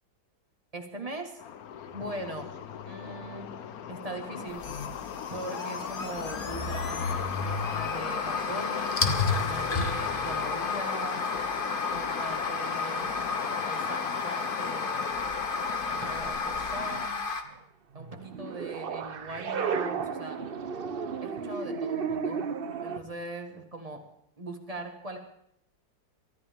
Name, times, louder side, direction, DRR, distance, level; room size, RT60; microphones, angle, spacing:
voice 1, 0.7-1.4 1.9-2.6 2.8-3.5 3.9-4.7 5.3-11.3 11.9-13.1 13.6-15.2 15.9-17.2 17.9-20.4 21.2-22.5 22.8-24.0 24.4-25.2, right 2 dB, 20° right, 4 dB, 1.6 m, -40 dB
sound 1, 1.4-17.1, left 8 dB, 60° left, 1.1 m, -37 dB
sound 2, 4.5-17.4, left 4 dB, 35° left, 1.1 m, -32 dB
sound 3, 18.0-23.0, right 6 dB, 55° right, 0.6 m, -33 dB
23.5 x 13.5 x 3.6 m, 0.74 s
omnidirectional pair, 2.0 m